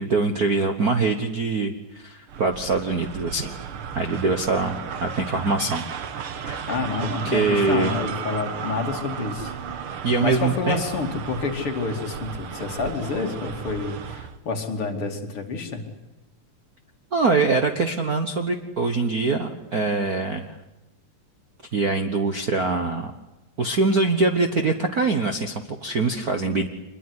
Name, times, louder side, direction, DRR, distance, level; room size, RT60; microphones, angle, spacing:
voice 1, 0.0-3.5 3.9-5.8 6.4-6.6 7.2-8.0 10.0-10.8 17.1-20.5 21.7-23.1 23.6-26.7, right 3 dB, 80° right, 6 dB, 0.8 m, -23 dB
sound 1, 2.3-14.4, right 7 dB, 55° right, 1.6 m, -34 dB
voice 2, 6.7-9.5 10.2-15.8, left 4 dB, 45° left, 3 dB, 3.3 m, -28 dB
25.5 x 22.0 x 9.7 m, 0.97 s
omnidirectional pair, 3.8 m